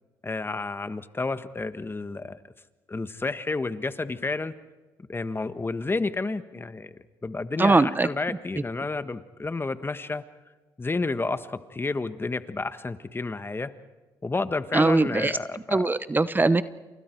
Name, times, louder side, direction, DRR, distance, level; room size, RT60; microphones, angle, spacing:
voice 1, 0.2-2.4 2.9-4.5 5.1-10.2 10.8-13.7 14.2-15.8, left 3 dB, 25° left, 12 dB, 1.5 m, -30 dB
voice 2, 7.6-8.1 14.7-16.6, right 3 dB, 20° right, 14 dB, 1.0 m, -21 dB
30.0 x 28.0 x 4.7 m, 1.2 s
supercardioid pair, 60°, 9 cm